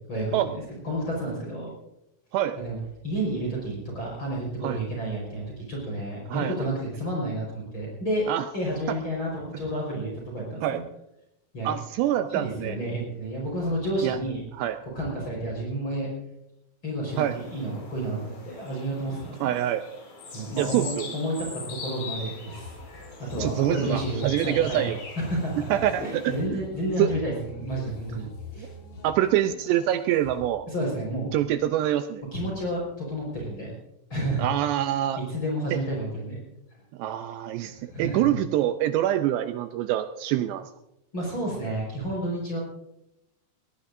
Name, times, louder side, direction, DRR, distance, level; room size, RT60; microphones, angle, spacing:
voice 1, 0.1-1.7 2.6-2.8 3.0-8.3 8.5-10.8 11.5-11.7 12.3-14.4 14.9-16.1 16.8-19.6 20.3-22.8 23.2-28.3 28.5-28.7 30.7-31.3 32.3-33.7 34.1-34.6 35.3-36.4 37.6-38.4 41.1-42.6, right 1 dB, 25° left, -3 dB, 5.2 m, -31 dB
voice 2, 11.6-12.8 14.0-14.2 14.5-14.8 17.2-17.4 19.4-19.8 20.6-21.1 23.4-25.0 25.7-26.6 27.0-27.2 29.0-30.7 31.3-32.2 34.4-35.2 35.7-35.8 37.0-40.7, right 12 dB, 80° right, 9 dB, 2.5 m, -25 dB
sound 1, 17.1-26.4, left 3 dB, 80° left, 7.0 m, -41 dB
sound 2, 22.5-30.5, left 4 dB, 55° left, 1.6 m, -44 dB
22.0 x 18.0 x 2.6 m, 0.83 s
omnidirectional pair, 5.4 m